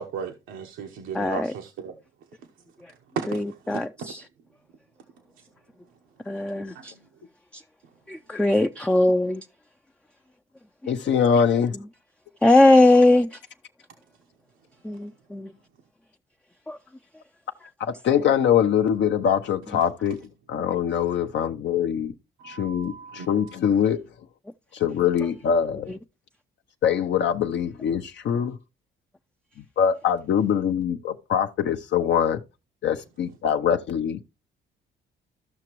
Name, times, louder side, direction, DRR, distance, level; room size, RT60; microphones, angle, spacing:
voice 1, 0.0-1.9 3.2-4.1 6.7-6.8 22.4-23.6, right 6 dB, 90° right, 1.0 m, -36 dB
voice 2, 1.1-1.5 3.3-4.2 6.3-6.9 8.1-9.4 12.4-13.4 14.8-15.5 16.7-16.8, left 2 dB, 5° left, 0.4 m, -20 dB
voice 3, 10.9-11.8 17.8-20.2 20.5-22.1 22.4-24.0 24.7-25.9 26.8-28.6 29.6-32.4 32.8-34.2, left 8 dB, 65° left, 0.6 m, -23 dB
13.5 x 5.9 x 3.0 m
cardioid pair, 90°, 20 cm